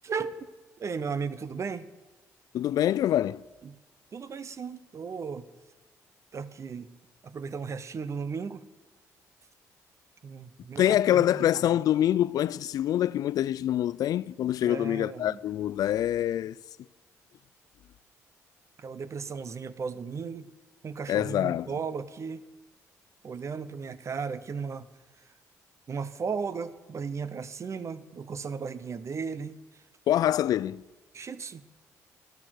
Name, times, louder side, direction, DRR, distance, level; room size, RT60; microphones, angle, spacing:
voice 1, 0.0-0.5 0.8-1.9 3.6-3.8 4.1-5.5 6.3-6.9 7.2-8.6 10.2-11.8 14.6-15.4 18.8-20.5 20.8-22.4 23.2-24.9 25.9-29.6 31.1-31.6, right 5 dB, 50° right, 0.9 m, -35 dB
voice 2, 2.5-3.4 10.8-16.5 21.1-21.7 30.1-30.8, left 12 dB, 70° left, 0.4 m, -25 dB
13.5 x 12.0 x 6.4 m
supercardioid pair, 60°, 7 cm